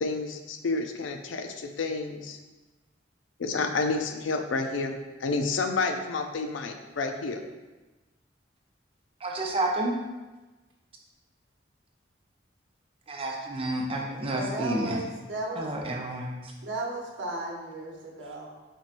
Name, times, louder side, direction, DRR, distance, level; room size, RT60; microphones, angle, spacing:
voice 1, 0.0-2.4 3.4-4.9 5.2-7.4, left 3 dB, 90° left, 6 dB, 0.5 m, -29 dB
voice 2, 9.2-10.0 13.1-15.0 15.6-16.4, right 1 dB, 30° right, 0 dB, 0.6 m, -30 dB
voice 3, 14.2-15.7 16.6-18.5, right 2 dB, 80° right, -1 dB, 0.9 m, -35 dB
4.5 x 4.2 x 2.5 m, 1.2 s
head